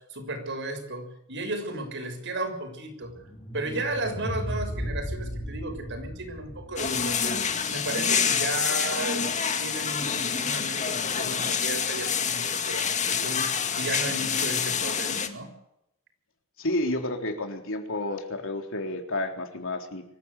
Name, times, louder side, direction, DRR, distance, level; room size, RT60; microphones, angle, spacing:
voice 1, 0.0-3.1 3.5-9.3 9.6-15.5, right 2 dB, 55° right, 5 dB, 6.6 m, -34 dB
sound 1, 3.0-8.1, equal, 20° left, 3.8 m, -36 dB
sound 2, 6.8-15.3, left 7 dB, 35° left, 2.1 m, -27 dB
voice 2, 16.6-20.0, left 1 dB, 65° left, 4 dB, 3.7 m, -30 dB
25.0 x 15.5 x 8.4 m, 0.80 s
head